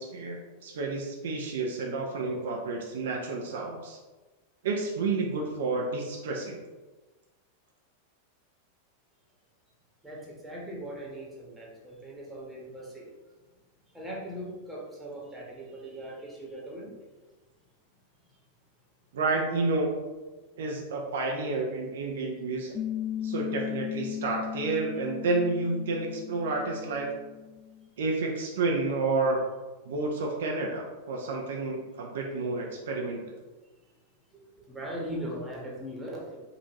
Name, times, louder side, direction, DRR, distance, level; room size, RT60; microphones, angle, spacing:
voice 1, 0.0-4.0 4.6-6.6 19.1-20.0 20.6-22.8 23.2-27.1 28.0-29.4 29.9-33.2, right 3 dB, 60° right, 0 dB, 0.5 m, -30 dB
voice 2, 10.0-13.1 13.9-16.9 34.3-36.4, right 1 dB, 5° right, -5 dB, 1.3 m, -39 dB
Piano, 22.7-27.9, left 10 dB, 25° left, 0.3 m, -37 dB
5.2 x 2.6 x 3.0 m, 1.2 s
figure-of-eight pair, 90°, 0 cm